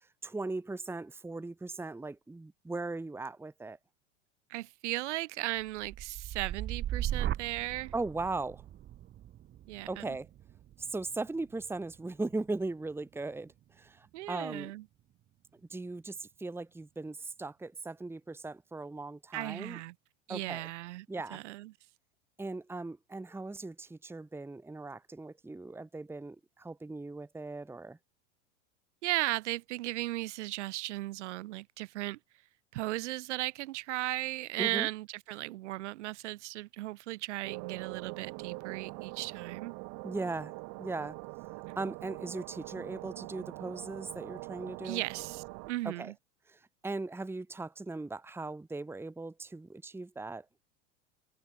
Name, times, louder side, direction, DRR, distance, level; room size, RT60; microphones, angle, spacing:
voice 1, 0.2-3.8 7.9-8.6 9.9-10.3 10.8-14.7 15.7-19.8 20.3-20.7 21.1-21.4 22.4-28.0 34.6-34.9 40.0-40.5 40.8-41.2 41.8-45.0 45.8-46.1 46.5-50.4, right 3 dB, 5° right, 1.3 m, -38 dB
voice 2, 4.5-7.9 9.7-10.2 14.1-14.8 19.3-19.9 20.3-21.1 21.3-21.7 29.0-32.2 32.7-39.8 44.8-46.1, right 17 dB, 65° right, 2.4 m, -36 dB
sound 1, 5.6-13.6 14.1-14.5, right 12 dB, 25° right, 0.9 m, -39 dB
sound 2, 37.4-45.7, right 29 dB, 50° right, 1.5 m, -43 dB
figure-of-eight pair, 85°, 38 cm